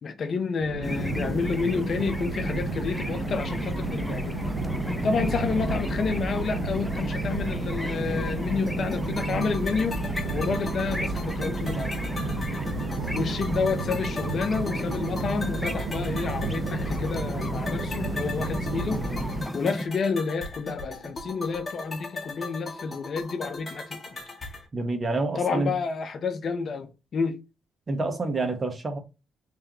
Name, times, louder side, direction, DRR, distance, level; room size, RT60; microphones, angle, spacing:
voice 1, 0.0-4.4 5.0-10.0 10.3-11.9 13.1-19.1 19.5-24.2 25.4-27.4, left 5 dB, 50° left, 0.7 m, -29 dB
sound 1, 0.6-19.4, right 4 dB, 80° right, 0.6 m, -33 dB
sound 2, 0.8-19.9, left 1 dB, 5° left, 0.5 m, -33 dB
sound 3, 8.7-24.7, left 3 dB, 25° left, 1.8 m, -39 dB
voice 2, 24.7-25.7 27.9-29.0, right 2 dB, 35° right, 1.1 m, -28 dB
3.7 x 3.3 x 2.8 m
cardioid pair, 90°, 0 cm